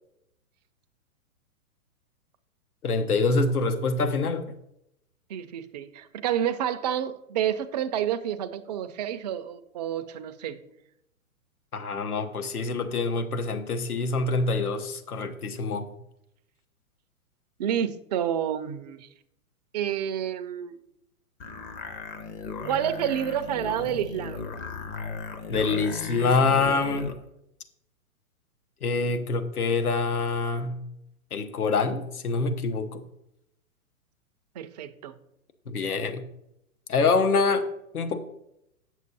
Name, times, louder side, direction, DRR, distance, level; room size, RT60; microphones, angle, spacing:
voice 1, 2.8-4.5 11.7-15.9 25.5-27.1 28.8-30.8 31.3-33.0 35.7-36.2 36.9-37.6 37.9-38.2, left 4 dB, 85° left, 9 dB, 1.0 m, -25 dB
voice 2, 5.3-10.6 17.6-19.1 19.7-20.8 22.6-24.5 34.6-35.1, right 10 dB, 30° right, 9 dB, 0.4 m, -29 dB
sound 1, 21.4-27.2, left 4 dB, 20° left, 0.6 m, -36 dB
8.3 x 6.4 x 4.1 m, 0.82 s
hypercardioid pair, 125°, 44 cm